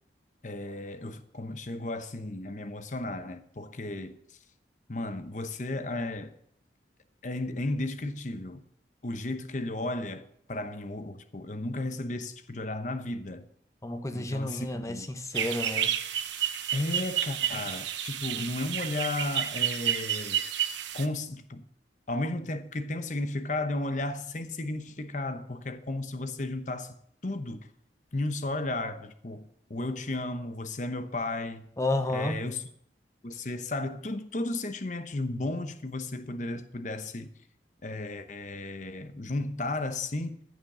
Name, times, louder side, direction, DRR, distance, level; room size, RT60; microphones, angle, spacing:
voice 1, 0.4-4.4 4.9-6.3 7.2-8.6 9.0-13.4 14.1-15.1 16.7-20.4 20.9-21.7 22.1-26.9 27.2-27.7 28.1-31.7 32.1-32.6 33.2-37.3 37.8-40.4, left 2 dB, 40° left, 0.9 m, -34 dB
voice 2, 13.8-15.9 31.8-32.4, left 1 dB, 15° left, 0.9 m, -31 dB
sound 1, 15.4-21.1, right 10 dB, 80° right, 0.9 m, -30 dB
14.5 x 6.5 x 6.7 m
head